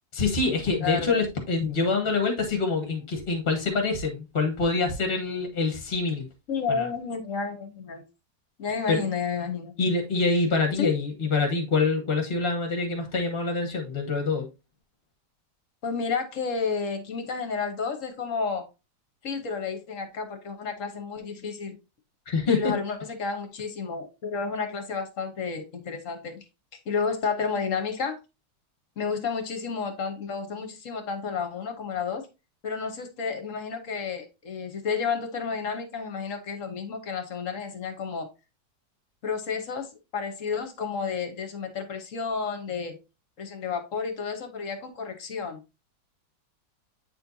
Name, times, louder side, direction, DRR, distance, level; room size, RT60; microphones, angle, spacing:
voice 1, 0.1-6.3 6.7-6.9 8.9-9.0 9.8-14.5 22.3-22.7, left 4 dB, 35° left, 1.4 m, -25 dB
voice 2, 0.8-1.2 6.5-8.0 8.6-9.7 10.8-10.9 15.8-18.7 19.2-21.8 22.5-26.4 26.7-28.2 29.0-32.2 32.6-38.3 39.2-43.0 43.4-45.6, left 5 dB, 50° left, 1.3 m, -31 dB
8.5 x 4.4 x 2.7 m
omnidirectional pair, 1.9 m